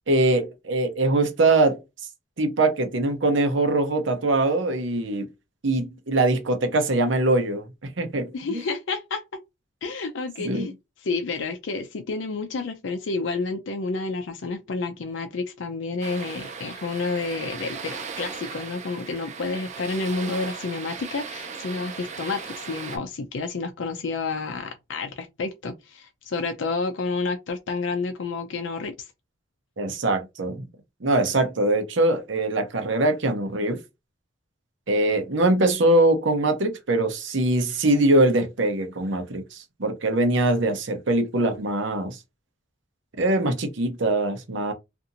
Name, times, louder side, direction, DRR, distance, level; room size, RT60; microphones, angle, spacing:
voice 1, 0.1-1.8 2.4-5.3 5.6-7.6 8.0-8.6 10.4-10.7 29.8-30.7 31.0-33.8 34.9-42.2 43.2-44.7, right 2 dB, 70° right, 0.8 m, -22 dB
voice 2, 8.3-9.4 9.8-10.7 11.0-29.1, left 3 dB, 75° left, 0.5 m, -30 dB
sound 1, 16.0-23.0, right 6 dB, 40° right, 0.5 m, -37 dB
2.7 x 2.5 x 2.5 m
head